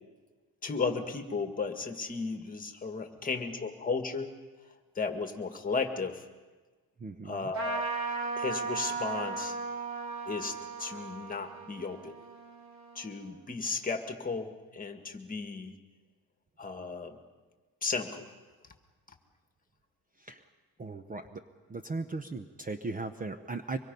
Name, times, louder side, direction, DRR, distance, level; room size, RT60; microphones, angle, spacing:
voice 1, 0.6-4.3 5.0-6.2 7.2-7.9 8.4-9.6 10.3-12.2 13.0-15.8 16.6-17.2 17.8-18.3, left 4 dB, 25° left, 6 dB, 1.7 m, -34 dB
voice 2, 7.0-7.5 20.2-20.4 20.8-21.4 21.7-23.8, right 3 dB, 20° right, 8 dB, 0.8 m, -37 dB
Trumpet, 7.5-13.4, right 4 dB, 50° right, 3.3 m, -37 dB
24.5 x 22.0 x 5.4 m, 1.3 s
cardioid pair, 140°, 37 cm